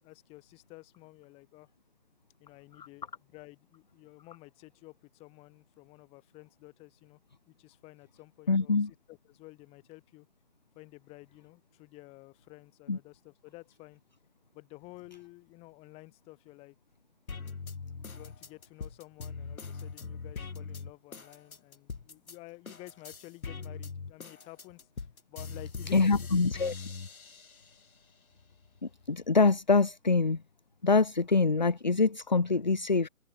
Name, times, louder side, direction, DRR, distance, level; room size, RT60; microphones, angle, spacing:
voice 1, 0.0-1.7 2.4-7.2 7.5-8.8 9.1-10.3 10.7-14.0 14.5-16.7 18.1-26.3 26.6-26.7, left 22 dB, 15° left, 3.0 m, -52 dB
voice 2, 8.5-8.9 12.9-13.0 25.9-26.7 28.8-30.4 30.8-33.1, left 4 dB, 35° left, 0.5 m, -25 dB
sound 1, 17.3-22.4 22.7-27.9 28.3-29.3, left 4 dB, 80° left, 4.1 m, -42 dB
hypercardioid pair, 160°, 42 cm